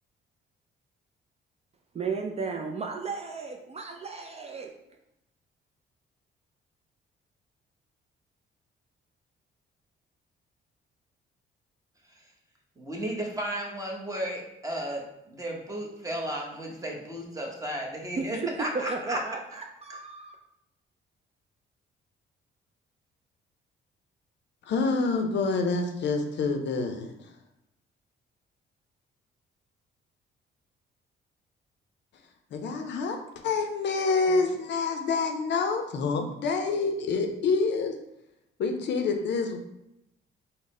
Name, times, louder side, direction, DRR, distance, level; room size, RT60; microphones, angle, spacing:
voice 1, 1.9-4.7 18.2-20.4, right 4 dB, 35° right, 2 dB, 0.4 m, -34 dB
voice 2, 12.8-19.2, right 1 dB, 15° right, -1 dB, 0.9 m, -34 dB
voice 3, 24.7-27.1 32.5-33.2 33.4-37.9 38.6-39.6, left 4 dB, 65° left, 4 dB, 0.5 m, -27 dB
3.9 x 2.0 x 3.7 m, 0.84 s
cardioid pair, 90°, 20 cm